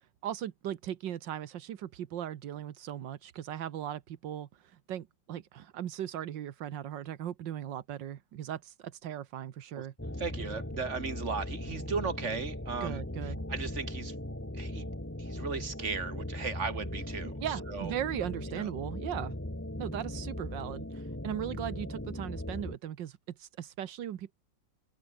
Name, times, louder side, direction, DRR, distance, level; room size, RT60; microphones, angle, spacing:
voice 1, 0.2-9.9 12.8-13.4 17.4-19.3 19.8-24.3, right 10 dB, 90° right, 1.8 m, -38 dB
sound 1, 10.0-22.8, left 1 dB, 10° left, 2.2 m, -39 dB
voice 2, 10.2-13.0 13.5-14.1 14.5-14.9 15.2-17.3 17.7-17.9 18.5-18.7, right 5 dB, 40° right, 2.6 m, -36 dB
open air
omnidirectional pair, 1.9 m